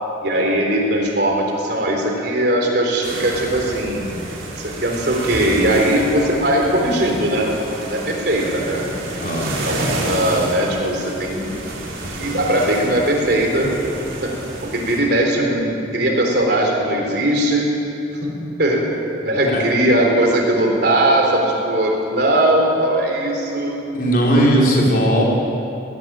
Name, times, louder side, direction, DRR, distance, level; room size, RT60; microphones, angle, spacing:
voice 1, 0.2-4.1 4.6-7.5 7.8-8.8 9.6-11.5 12.2-13.7 14.2-14.3 14.6-17.7 18.1-18.3 18.6-18.9 19.2-23.8 24.4-24.7, right 1 dB, 55° right, 0 dB, 3.8 m, -19 dB
sound 1, 3.0-15.0, right 1 dB, 90° right, 4.3 m, -30 dB
voice 2, 9.2-9.5 19.4-19.6 23.9-25.2, equal, 45° left, -3 dB, 4.7 m, -17 dB
20.0 x 18.0 x 7.7 m, 2.8 s
head